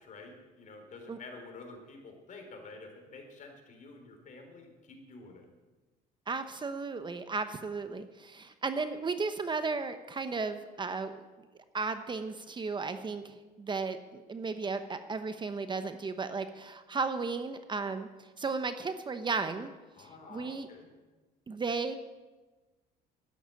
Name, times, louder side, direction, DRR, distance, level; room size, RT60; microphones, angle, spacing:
voice 1, 0.0-5.5 20.0-20.9, left 3 dB, 50° left, 4 dB, 3.9 m, -49 dB
voice 2, 6.3-11.2 11.7-19.7 20.0-20.7 21.5-22.0, right 4 dB, 25° right, 9 dB, 1.0 m, -35 dB
12.5 x 9.4 x 9.9 m, 1.2 s
cardioid pair, 110°, 17 cm